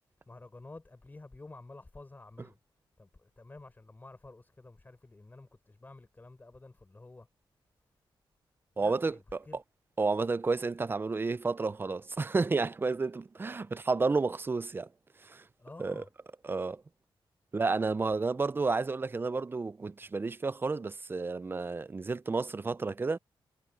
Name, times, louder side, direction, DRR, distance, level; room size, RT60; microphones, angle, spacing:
voice 1, 0.3-2.6 3.0-7.3 8.7-9.6 15.6-16.1, left 2 dB, 20° left, 4.2 m, -51 dB
voice 2, 8.8-9.1 10.0-14.9 15.2-15.4 15.8-15.9 16.4-16.8 17.5-23.2, right 3 dB, 25° right, 0.4 m, -31 dB
wide cardioid pair, 130°, 9 cm